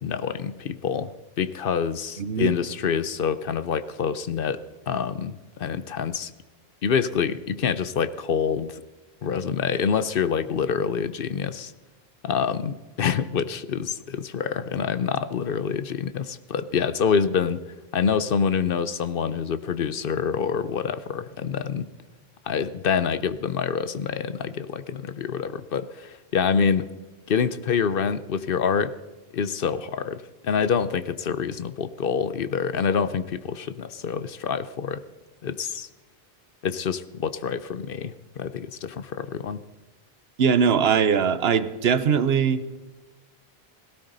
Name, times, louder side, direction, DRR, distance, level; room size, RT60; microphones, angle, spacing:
voice 1, 0.0-6.3 6.8-8.8 9.2-11.7 12.2-17.6 17.9-21.9 22.5-26.9 27.3-29.0 29.3-35.0 35.4-35.9 36.6-39.6, left 6 dB, 65° left, 14 dB, 0.9 m, -26 dB
voice 2, 2.2-2.5 40.4-42.8, right 6 dB, 75° right, 13 dB, 1.0 m, -21 dB
18.0 x 16.5 x 4.0 m, 1.1 s
omnidirectional pair, 1.1 m